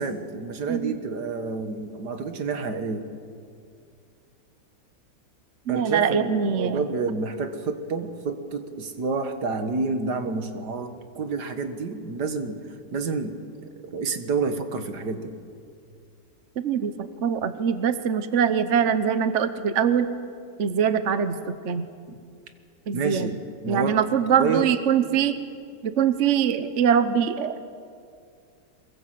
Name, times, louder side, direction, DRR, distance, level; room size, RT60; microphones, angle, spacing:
voice 1, 0.0-3.1 5.7-12.6 12.9-13.4 13.9-15.3 22.1-22.2 22.9-24.0 24.4-24.7, right 4 dB, 70° right, 8 dB, 2.1 m, -29 dB
voice 2, 5.7-6.8 16.6-20.1 20.6-21.8 22.9-23.3 23.7-25.3 25.8-27.6, right 8 dB, 50° right, 11 dB, 1.1 m, -23 dB
23.5 x 22.0 x 7.7 m, 2.3 s
omnidirectional pair, 1.9 m